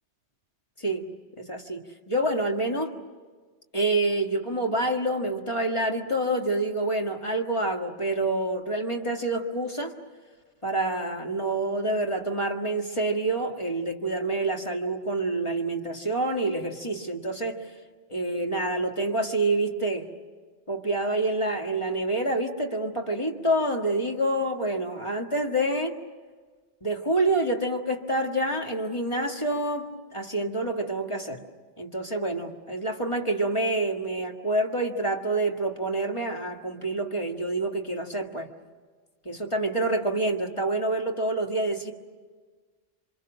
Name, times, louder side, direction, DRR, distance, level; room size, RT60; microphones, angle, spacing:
voice 1, 0.8-1.1 1.4-2.9 3.7-9.9 10.6-17.6 18.1-20.1 20.7-25.9 26.8-31.4 31.8-38.5 39.3-41.9, right 2 dB, 25° left, 2 dB, 1.9 m, -27 dB
28.5 x 25.5 x 6.3 m, 1.5 s
omnidirectional pair, 1.2 m